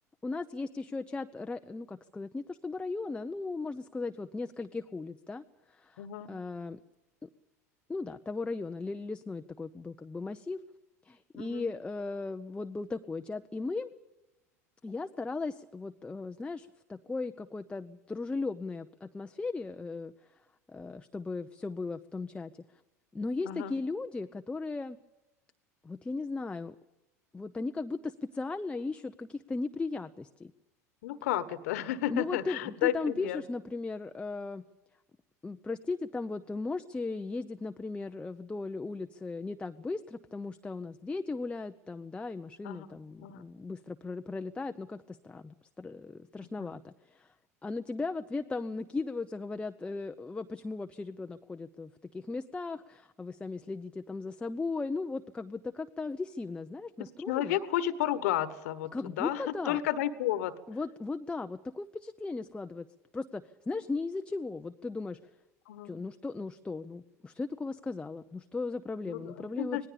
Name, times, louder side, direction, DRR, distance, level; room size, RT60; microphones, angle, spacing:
voice 1, 0.2-6.8 7.2-7.3 7.9-10.6 11.0-13.9 14.8-20.1 20.7-22.8 23.1-25.0 25.8-26.7 27.3-30.5 32.1-34.6 35.4-47.3 47.6-57.6 58.9-59.8 60.7-62.9 63.1-65.2 65.8-69.9, left 3 dB, 10° left, 8 dB, 0.7 m, -37 dB
voice 2, 6.0-6.3 11.4-11.7 23.4-23.7 31.0-33.4 42.6-42.9 43.2-43.4 46.6-46.7 57.3-60.5 65.7-65.9 69.1-69.9, left 12 dB, 65° left, 14 dB, 1.4 m, -32 dB
26.0 x 19.0 x 7.0 m, 1.0 s
hypercardioid pair, 75°, 9 cm